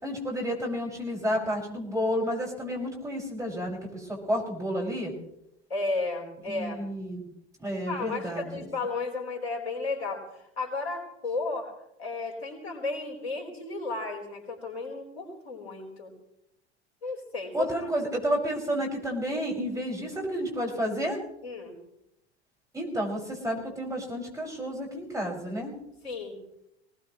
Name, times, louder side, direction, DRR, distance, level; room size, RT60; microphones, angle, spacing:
voice 1, 0.0-5.1 6.5-7.3 7.6-8.7 17.5-21.2 22.7-25.7, equal, 10° right, -2 dB, 6.2 m, -31 dB
voice 2, 5.7-6.8 7.9-11.7 12.0-16.1 17.0-17.9 19.3-19.4 21.4-21.7 26.0-26.4, left 3 dB, 70° left, 2 dB, 4.5 m, -33 dB
23.0 x 18.5 x 3.2 m, 0.80 s
figure-of-eight pair, 85°, 33 cm